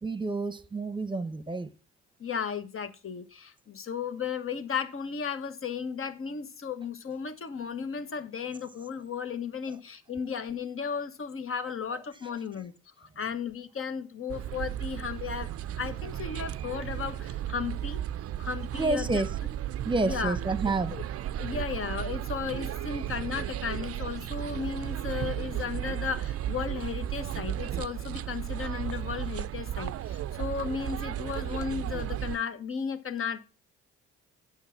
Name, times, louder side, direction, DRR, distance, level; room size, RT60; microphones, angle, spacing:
voice 1, 0.0-1.7 18.7-19.3 19.8-21.0, right 3 dB, 15° right, 1.0 m, -29 dB
voice 2, 2.2-12.7 13.0-15.5 15.8-18.0 18.4-19.2 20.0-20.3 20.9-21.0 21.4-33.4, left 6 dB, 45° left, 1.3 m, -35 dB
sound 1, 14.3-32.4, right 11 dB, 50° right, 0.5 m, -34 dB
8.9 x 6.3 x 5.8 m
supercardioid pair, 60°, 31 cm